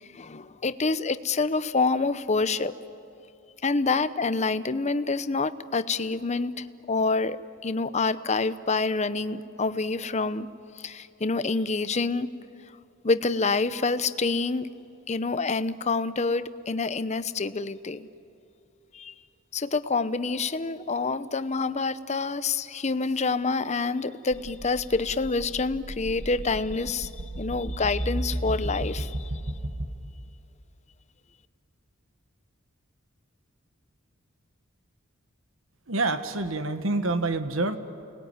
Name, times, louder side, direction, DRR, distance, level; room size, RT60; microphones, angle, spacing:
voice 1, 0.1-2.7 3.6-7.4 7.6-10.5 10.8-12.3 13.0-14.7 15.1-18.1 18.9-19.1 19.5-27.1 27.4-29.3, left 3 dB, 35° left, 13 dB, 0.8 m, -27 dB
sound 1, 24.3-29.9, right 1 dB, 50° right, 1.7 m, -34 dB
voice 2, 35.9-37.8, right 2 dB, 70° right, 9 dB, 1.5 m, -27 dB
29.5 x 20.0 x 9.5 m, 2.8 s
head